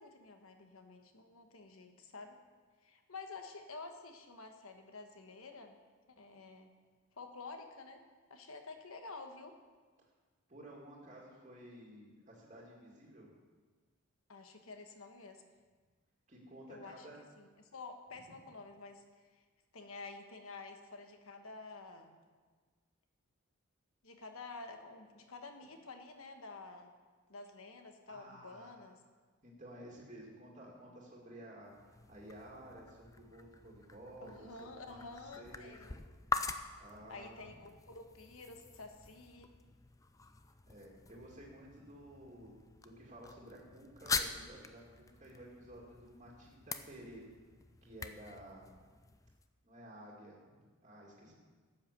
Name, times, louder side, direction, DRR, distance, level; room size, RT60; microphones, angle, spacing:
voice 1, 0.0-2.4 2.8-5.8 6.1-6.7 7.1-8.0 8.3-9.6 14.3-15.4 16.7-17.1 17.4-19.3 19.7-22.2 24.0-26.9 27.3-29.0 34.2-35.9 37.1-39.5, left 3 dB, 70° left, 6 dB, 1.2 m, -50 dB
voice 2, 10.5-13.3 16.3-17.2 28.1-28.8 29.4-36.0 36.8-37.5 40.7-47.2 47.8-48.7 49.6-50.6 50.8-51.3, right 1 dB, 35° right, -3 dB, 2.3 m, -53 dB
Easy Open Can, 31.6-49.5, left 4 dB, 15° left, 0.4 m, -45 dB
12.5 x 8.2 x 6.7 m, 1.4 s
head